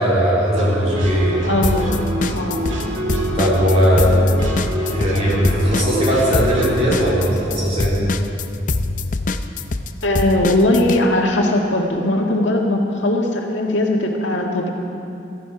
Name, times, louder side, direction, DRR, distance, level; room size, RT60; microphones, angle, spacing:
voice 1, 0.0-1.4 3.3-4.1 4.9-8.1, equal, 35° right, -6 dB, 3.8 m, -18 dB
sound 1, 0.5-7.4, right 1 dB, 85° right, 2.4 m, -26 dB
voice 2, 1.4-2.0 2.4-2.6 10.0-14.7, left 1 dB, 75° left, 0 dB, 1.8 m, -19 dB
sound 2, 1.6-2.8 3.1-11.0, left 3 dB, 40° left, 0.5 m, -24 dB
16.5 x 14.0 x 5.0 m, 2.7 s
head